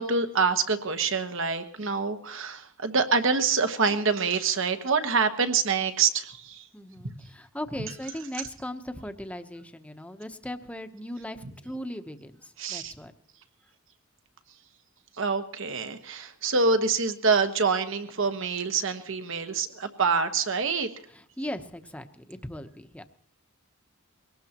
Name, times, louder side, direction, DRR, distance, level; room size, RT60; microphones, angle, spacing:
voice 1, 0.0-6.6 12.6-12.9 15.2-20.9, right 5 dB, 65° right, 8 dB, 1.2 m, -26 dB
voice 2, 6.7-13.1 21.1-23.0, left 1 dB, 5° left, 8 dB, 0.9 m, -38 dB
22.5 x 18.5 x 3.0 m, 0.65 s
head